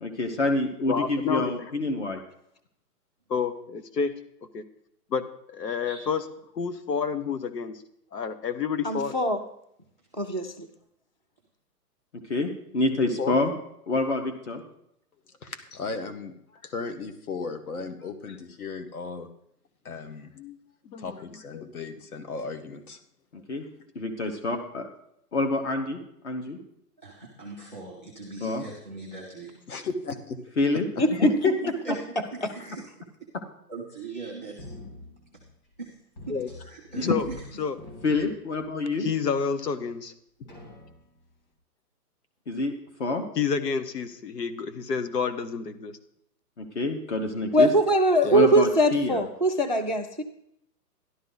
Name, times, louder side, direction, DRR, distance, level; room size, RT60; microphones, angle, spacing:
voice 1, 0.0-2.2 12.3-13.5 13.9-14.6 23.5-23.6 23.9-24.8 25.3-26.0 26.2-26.6 28.4-28.6 30.6-30.9 31.2-31.5 36.9-37.2 38.0-39.1 42.5-42.7 43.0-43.2 46.6-47.7 48.3-49.2, left 2 dB, 45° left, 6 dB, 1.2 m, -26 dB
voice 2, 0.9-1.5 3.3-4.1 4.5-4.6 5.1-6.2 6.5-7.8 8.1-9.1 13.0-13.4 20.4-20.6 20.8-21.7 36.3-36.5 37.0-37.3 37.6-37.8 39.0-40.1 40.4-40.5 43.3-46.0 48.2-48.4, left 6 dB, 85° left, 12 dB, 1.4 m, -29 dB
voice 3, 8.8-9.4 10.2-10.7 31.0-31.3 32.4-32.5 47.5-50.2, right 1 dB, 35° right, 8 dB, 0.4 m, -22 dB
voice 4, 15.4-19.3 19.9-20.3 21.0-23.0 29.7-30.4 30.7-31.1, left 4 dB, 65° left, 9 dB, 1.6 m, -36 dB
voice 5, 27.0-29.6 31.0-31.2 31.8-32.0 32.3-32.9 33.7-34.7 35.8-35.9 36.3-36.4 36.6-37.4, right 3 dB, 10° left, -3 dB, 0.7 m, -39 dB
sound 1, 34.6-35.8 36.2-37.5 37.7-39.0 39.6-39.7 40.5-41.3, left 1 dB, 30° left, 2.3 m, -46 dB
13.0 x 11.5 x 4.0 m, 0.74 s
hypercardioid pair, 175°, 47 cm